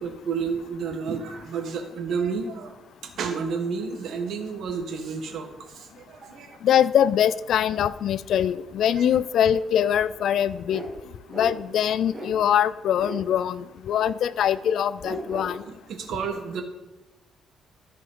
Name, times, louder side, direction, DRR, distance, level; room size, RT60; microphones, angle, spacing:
voice 1, 0.0-2.7 3.2-6.6 9.0-9.1 15.7-16.6, right 5 dB, 60° right, 5 dB, 1.3 m, -31 dB
voice 2, 6.6-10.8 11.3-15.6, left 9 dB, 60° left, 17 dB, 0.3 m, -23 dB
sound 1, 10.7-10.9 11.3-11.5 12.1-12.3 12.9-13.2 14.2-14.3 15.0-15.5, equal, 15° right, 2.1 m, -35 dB
13.5 x 5.2 x 3.8 m, 1.0 s
cardioid pair, 150°, 0 cm